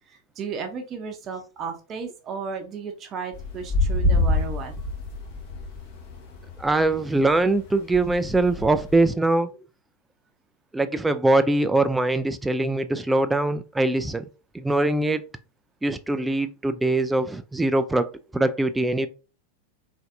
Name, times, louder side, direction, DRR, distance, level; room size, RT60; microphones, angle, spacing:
voice 1, 0.1-4.7, right 5 dB, 30° right, 0.7 m, -34 dB
sound 1, 3.3-9.1, left 2 dB, 45° left, 1.2 m, -27 dB
voice 2, 6.6-9.5 10.7-14.3 14.5-15.2 15.8-19.1, right 2 dB, 5° right, 0.3 m, -22 dB
3.9 x 3.3 x 2.6 m
figure-of-eight pair, 90°, 0 cm